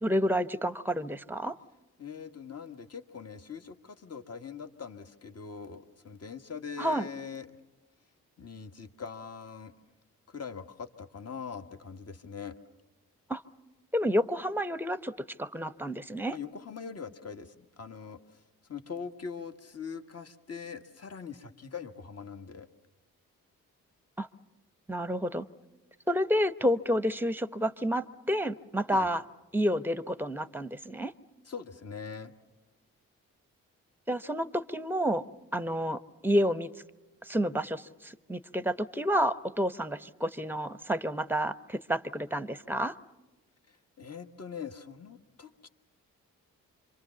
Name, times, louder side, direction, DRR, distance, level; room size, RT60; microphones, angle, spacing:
voice 1, 0.0-1.5 6.8-7.1 13.3-13.4 13.9-16.4 24.2-24.3 24.9-25.5 26.1-29.2 29.5-31.1 34.1-35.3 35.5-36.7 37.2-42.9, equal, 5° right, 14 dB, 0.9 m, -29 dB
voice 2, 2.0-7.5 8.4-9.7 10.3-12.6 16.3-18.4 18.7-22.7 28.9-29.1 31.4-32.3 43.7-45.7, left 6 dB, 40° left, 7 dB, 1.5 m, -42 dB
26.5 x 24.5 x 7.1 m, 1.1 s
hypercardioid pair, 40°, 39 cm